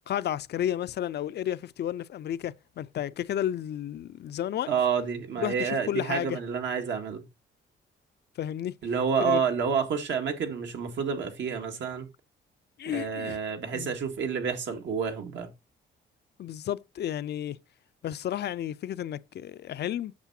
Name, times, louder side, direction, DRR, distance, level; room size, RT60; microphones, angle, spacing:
voice 1, 0.1-4.7 5.4-6.4 8.4-8.7 9.2-9.4 12.8-13.4 13.7-14.0 16.4-17.6 18.0-20.1, left 11 dB, 55° left, 0.5 m, -32 dB
voice 2, 4.7-7.2 8.8-12.1 12.9-15.5, right 6 dB, 65° right, 1.9 m, -29 dB
8.3 x 6.7 x 2.7 m
cardioid pair, 90°, 20 cm